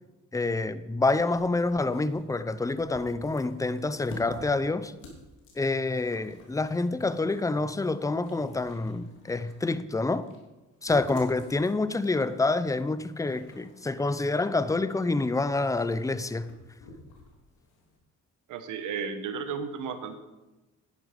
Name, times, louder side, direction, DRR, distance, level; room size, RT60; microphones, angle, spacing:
voice 1, 0.3-4.9 5.6-10.3 10.8-16.5, left 3 dB, 10° left, 0.6 m, -27 dB
sound 1, 1.2-18.0, left 3 dB, 85° left, 3.0 m, -51 dB
voice 2, 18.5-20.1, right 6 dB, 85° right, 1.4 m, -33 dB
10.5 x 10.5 x 5.2 m
cardioid pair, 90°, 30 cm